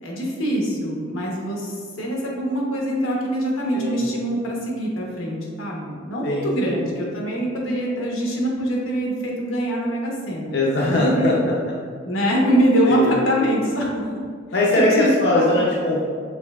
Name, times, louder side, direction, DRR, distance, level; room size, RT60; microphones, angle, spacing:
voice 1, 0.0-11.4 12.0-14.0 14.8-15.1 15.3-15.7, equal, 90° left, -2 dB, 1.0 m, -23 dB
voice 2, 3.7-4.1 6.2-6.8 10.5-11.7 12.9-13.1 14.5-16.1, left 1 dB, 55° left, -4 dB, 0.5 m, -21 dB
5.2 x 3.4 x 2.3 m, 2.1 s
head